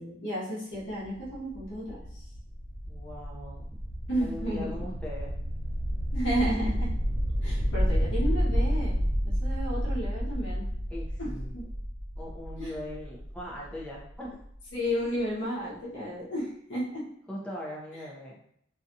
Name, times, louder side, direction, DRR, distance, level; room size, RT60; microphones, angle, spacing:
voice 1, 0.0-2.3 4.1-4.8 6.1-6.9 7.4-10.7 11.2-11.7 12.6-12.8 14.7-17.1, equal, 80° left, -6 dB, 0.9 m, -33 dB
sound 1, 0.8-14.4, equal, 60° right, 0.8 m, -30 dB
voice 2, 2.9-3.7 4.2-5.3 10.9-11.5 12.2-14.4 17.3-18.4, equal, 5° left, -4 dB, 0.5 m, -40 dB
2.7 x 2.3 x 2.6 m, 0.68 s
head